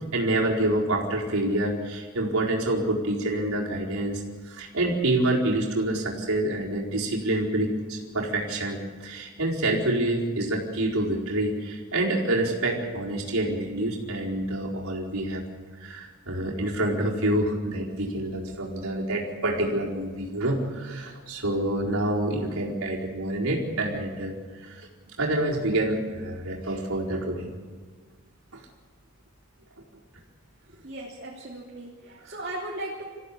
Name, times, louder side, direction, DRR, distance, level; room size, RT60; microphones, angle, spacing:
voice 1, 0.0-15.4 15.8-24.3 24.6-24.8 25.2-27.5, right 1 dB, 85° right, -3 dB, 4.5 m, -27 dB
voice 2, 30.7-33.0, right 1 dB, 45° right, -3 dB, 3.1 m, -37 dB
26.5 x 15.5 x 8.5 m, 1.5 s
head